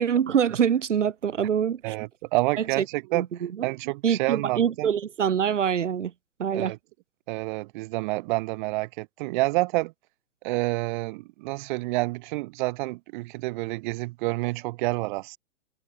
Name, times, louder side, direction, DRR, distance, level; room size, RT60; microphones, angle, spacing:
voice 1, 0.0-1.9 3.1-3.3 4.0-6.1 6.4-6.7, right 8 dB, 60° right, 4.0 m, -24 dB
voice 2, 1.8-4.9 6.5-6.8 7.3-9.9 10.4-15.4, right 22 dB, 35° right, 2.7 m, -28 dB
figure-of-eight pair, 115°, 40 cm